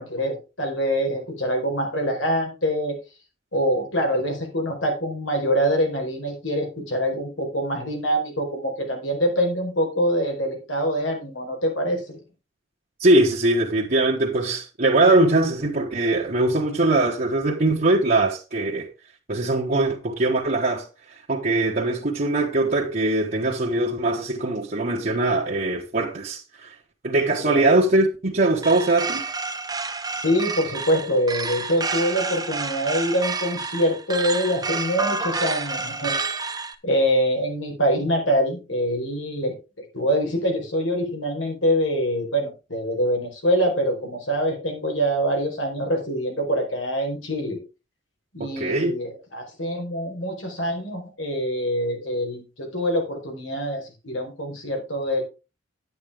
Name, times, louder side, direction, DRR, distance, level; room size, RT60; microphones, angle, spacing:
voice 1, 0.0-3.0 3.5-12.2 27.4-27.7 30.2-36.2 36.8-39.5 39.9-47.6 48.3-55.2, equal, 90° left, 4.6 m, -25 dB
voice 2, 13.0-18.9 19.3-20.9 21.3-26.7 27.0-29.2 48.6-49.0, right 2 dB, 50° right, 1.5 m, -21 dB
sound 1, 28.6-36.7, right 4 dB, 20° right, 1.1 m, -29 dB
9.8 x 9.6 x 3.6 m
head